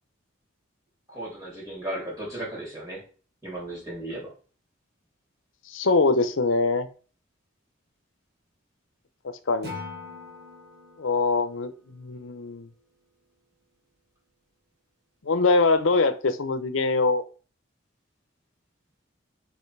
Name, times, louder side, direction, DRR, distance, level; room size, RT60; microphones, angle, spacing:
voice 1, 1.1-3.0 3.4-4.3, right 1 dB, 15° right, -5 dB, 3.3 m, -35 dB
voice 2, 5.7-6.9 9.2-9.7 11.0-12.7 15.2-17.2, left 3 dB, 85° left, 11 dB, 0.7 m, -23 dB
Acoustic guitar / Strum, 9.6-12.8, left 3 dB, 50° right, 2.2 m, -43 dB
5.5 x 4.4 x 4.6 m, 0.38 s
head